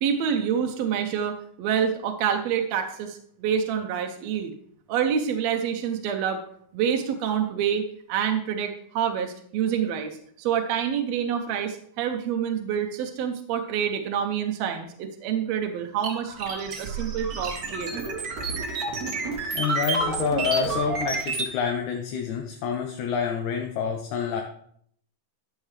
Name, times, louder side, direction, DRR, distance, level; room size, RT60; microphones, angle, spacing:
voice 1, 0.0-4.5 4.9-6.4 6.7-7.8 8.1-18.1, right 8 dB, 75° right, 4 dB, 1.8 m, -27 dB
sound 1, 16.0-21.5, right 3 dB, 55° right, 1.0 m, -29 dB
voice 2, 19.5-24.4, left 7 dB, 80° left, 2 dB, 2.2 m, -28 dB
12.0 x 6.4 x 3.2 m, 0.65 s
omnidirectional pair, 3.4 m